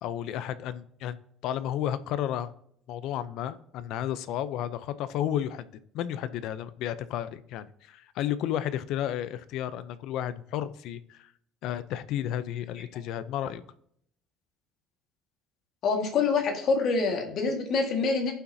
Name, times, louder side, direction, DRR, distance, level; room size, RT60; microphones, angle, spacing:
voice 1, 0.0-1.2 1.4-2.5 2.9-5.6 5.9-11.3 11.6-13.6, left 11 dB, 60° left, 14 dB, 0.5 m, -32 dB
voice 2, 15.8-18.3, left 4 dB, 45° left, 3 dB, 1.7 m, -26 dB
15.5 x 5.8 x 2.7 m, 0.67 s
cardioid pair, 175°, 0 cm